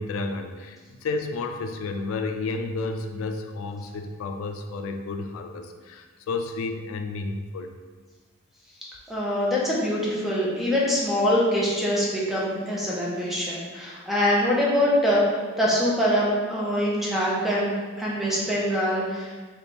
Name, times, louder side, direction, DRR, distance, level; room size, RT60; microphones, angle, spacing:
voice 1, 0.0-7.7, left 3 dB, 85° left, 6 dB, 0.3 m, -31 dB
voice 2, 9.1-19.3, equal, ahead, -6 dB, 0.7 m, -24 dB
3.4 x 2.3 x 4.1 m, 1.4 s
head